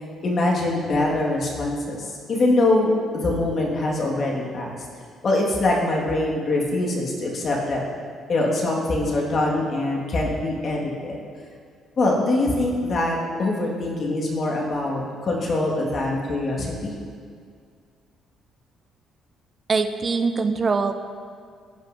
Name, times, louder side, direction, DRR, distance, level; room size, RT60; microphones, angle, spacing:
voice 1, 0.2-4.7 5.2-7.8 8.3-11.2 12.0-16.9, left 2 dB, 50° left, -2 dB, 1.6 m, -23 dB
voice 2, 19.7-20.9, right 4 dB, 40° right, 8 dB, 0.4 m, -22 dB
15.0 x 5.5 x 2.5 m, 2.1 s
cardioid pair, 80°, 0 cm